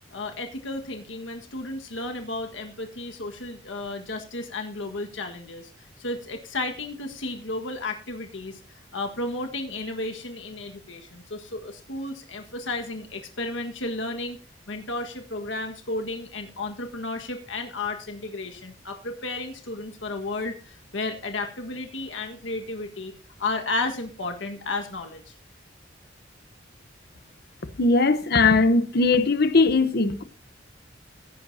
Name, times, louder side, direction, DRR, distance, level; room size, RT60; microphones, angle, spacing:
voice 1, 0.1-8.6 8.9-14.4 14.7-23.1 23.4-25.3, left 2 dB, 85° left, 1.6 m, -33 dB
voice 2, 27.8-30.2, left 3 dB, 60° left, 0.9 m, -19 dB
16.5 x 9.7 x 2.8 m
head